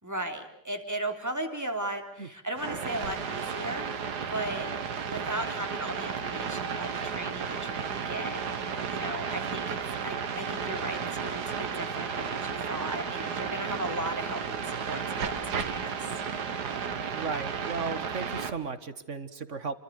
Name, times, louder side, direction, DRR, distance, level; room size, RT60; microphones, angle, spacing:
voice 1, 0.0-4.7 5.0-15.9, right 1 dB, 10° right, 4 dB, 3.4 m, -37 dB
sound 1, 2.6-18.5, right 6 dB, 70° right, 2.1 m, -33 dB
voice 2, 17.1-19.7, right 4 dB, 45° right, 12 dB, 1.9 m, -35 dB
29.0 x 25.0 x 6.6 m, 0.79 s
omnidirectional pair, 1.8 m